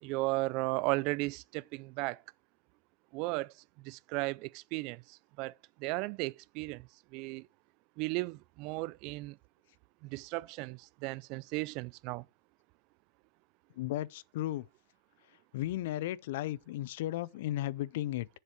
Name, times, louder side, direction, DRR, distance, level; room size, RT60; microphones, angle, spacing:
voice 1, 0.0-2.2 3.1-3.5 3.8-7.5 8.0-9.4 10.0-12.3, right 23 dB, 55° right, 0.4 m, -35 dB
voice 2, 13.8-14.7 15.5-18.3, left 14 dB, 75° left, 0.4 m, -35 dB
7.4 x 6.7 x 4.3 m
supercardioid pair, 120°, 0 cm